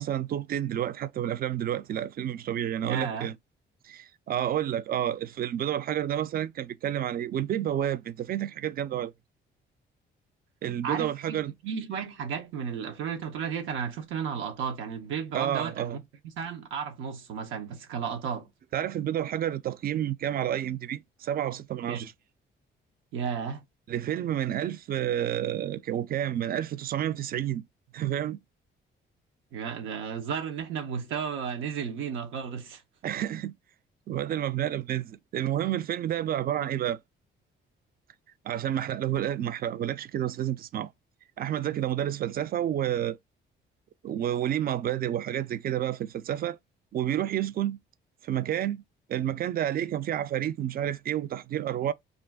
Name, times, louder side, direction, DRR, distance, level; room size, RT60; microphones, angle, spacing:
voice 1, 0.0-3.4 3.8-9.1 10.6-11.5 15.3-16.0 18.7-22.1 23.9-27.6 27.9-28.4 33.0-33.5 34.1-37.0 38.4-40.9 41.4-43.2 44.0-46.6 46.9-47.8 48.2-48.8 49.1-51.9, right 11 dB, 50° right, 0.4 m, -30 dB
voice 2, 2.8-3.3 10.8-11.4 11.6-16.0 16.4-18.5 21.9-22.1 23.1-23.6 29.5-32.8, right 7 dB, 85° right, 0.6 m, -33 dB
2.5 x 2.2 x 3.4 m
cardioid pair, 90°, 20 cm